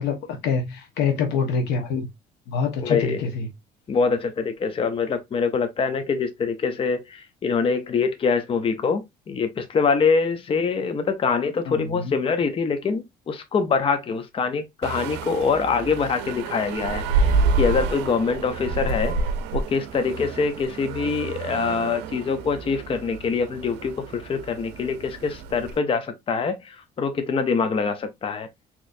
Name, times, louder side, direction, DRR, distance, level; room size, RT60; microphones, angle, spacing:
voice 1, 0.0-2.1 2.5-3.5 11.7-12.1, left 5 dB, 85° left, 1.1 m, -26 dB
voice 2, 2.8-3.2 3.9-19.1 19.5-28.5, left 5 dB, 35° left, 0.6 m, -24 dB
sound 1, 14.8-25.8, right 3 dB, 90° right, 0.5 m, -28 dB
4.1 x 2.9 x 2.6 m
cardioid pair, 110°, 17 cm